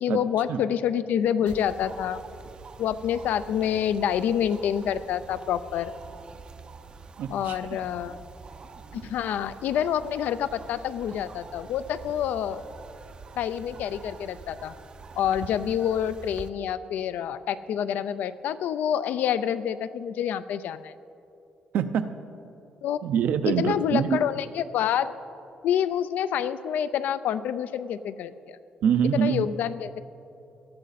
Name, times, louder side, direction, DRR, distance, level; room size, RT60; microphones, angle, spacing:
voice 1, 0.0-2.2 2.8-5.9 7.3-8.2 8.9-12.6 13.4-14.7 15.2-20.9 22.8-23.0 23.5-25.1 25.6-28.6 29.1-30.0, left 9 dB, 80° left, 13 dB, 0.5 m, -27 dB
sound 1, 1.5-16.5, right 5 dB, 35° right, 0.5 m, -45 dB
voice 2, 7.2-7.6 21.7-22.1 23.0-24.2 28.8-29.5, right 8 dB, 70° right, 10 dB, 0.7 m, -24 dB
18.0 x 12.0 x 4.1 m, 2.8 s
cardioid pair, 160°, 3 cm